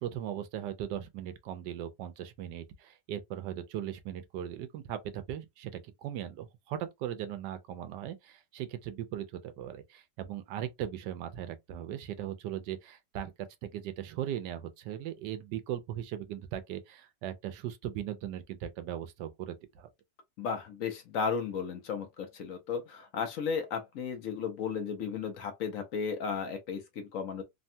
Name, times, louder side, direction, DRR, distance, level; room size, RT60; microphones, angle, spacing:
voice 1, 0.0-13.3 13.6-19.9, right 11 dB, 90° right, 1.2 m, -38 dB
voice 2, 20.4-27.4, left 6 dB, 65° left, 0.9 m, -34 dB
3.4 x 2.2 x 2.6 m
omnidirectional pair, 1.9 m